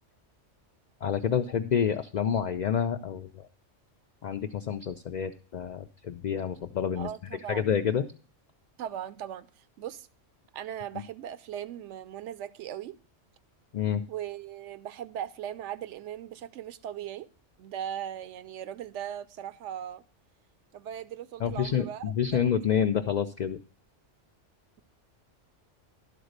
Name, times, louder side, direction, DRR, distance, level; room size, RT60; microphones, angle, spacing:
voice 1, 1.0-3.5 4.2-7.1 7.5-8.1 13.7-14.0 21.4-23.6, left 8 dB, 65° left, 7 dB, 0.4 m, -28 dB
voice 2, 7.0-7.8 8.8-10.1 10.5-13.0 14.1-17.3 17.6-20.0 20.7-22.0, right 10 dB, 75° right, 14 dB, 0.9 m, -38 dB
12.0 x 4.0 x 6.5 m, 0.41 s
omnidirectional pair, 1.3 m